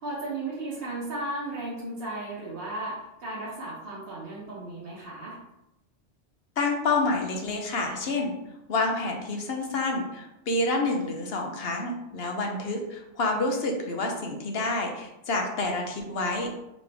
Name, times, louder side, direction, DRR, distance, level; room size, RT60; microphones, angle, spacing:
voice 1, 0.0-5.4, right 2 dB, 55° right, -7 dB, 1.2 m, -35 dB
voice 2, 6.6-8.3 8.7-16.5, left 2 dB, 60° left, 2 dB, 0.9 m, -28 dB
4.2 x 3.0 x 3.3 m, 0.89 s
omnidirectional pair, 1.2 m